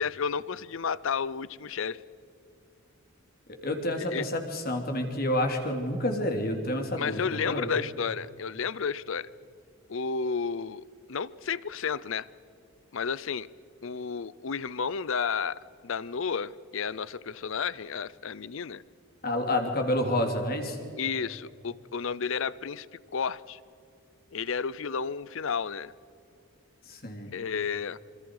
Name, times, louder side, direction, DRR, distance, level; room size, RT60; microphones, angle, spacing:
voice 1, 0.0-2.0 4.0-4.3 7.0-9.3 9.9-12.3 12.9-13.5 13.8-18.8 21.0-22.9 23.1-23.6 24.3-25.9 27.3-28.0, left 6 dB, 60° left, 20 dB, 0.5 m, -32 dB
voice 2, 3.6-7.7 19.2-20.8 26.8-27.3, left 1 dB, 45° left, 4 dB, 2.9 m, -29 dB
27.0 x 25.5 x 4.8 m, 2.6 s
head